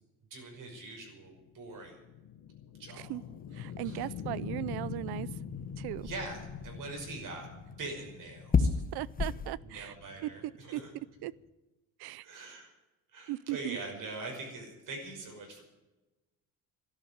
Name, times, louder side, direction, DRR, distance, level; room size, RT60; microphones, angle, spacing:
voice 1, 0.3-2.0 2.8-3.2 3.8-4.1 6.0-8.8 9.6-10.9 12.2-12.7 13.1-15.6, right 3 dB, 55° right, 2 dB, 5.7 m, -43 dB
sound 1, 0.8-11.5, left 7 dB, 50° left, 1.1 m, -44 dB
sound 2, 3.1-9.6, left 5 dB, 25° left, 1.0 m, -36 dB
voice 2, 3.5-5.3 5.8-6.1 8.9-9.9 10.2-10.8 11.2-11.3 12.0-12.3 13.3-13.8, right 16 dB, 90° right, 21 dB, 0.7 m, -37 dB
13.0 x 11.5 x 9.4 m, 1.0 s
cardioid pair, 135°, 37 cm